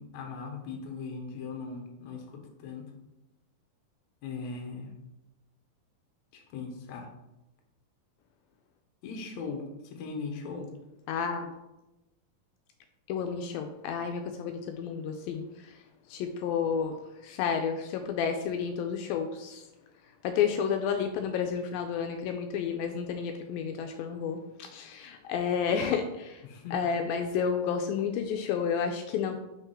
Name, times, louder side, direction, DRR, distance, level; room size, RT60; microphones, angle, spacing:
voice 1, 0.0-2.9 4.2-4.9 6.3-7.1 9.0-10.7 26.4-26.8, left 4 dB, 65° left, 2 dB, 2.0 m, -39 dB
voice 2, 11.1-11.5 13.1-15.7 16.1-17.0 17.2-19.6 20.2-26.4 26.7-29.4, left 7 dB, 80° left, 5 dB, 2.3 m, -31 dB
6.0 x 3.5 x 5.6 m, 0.96 s
omnidirectional pair, 4.2 m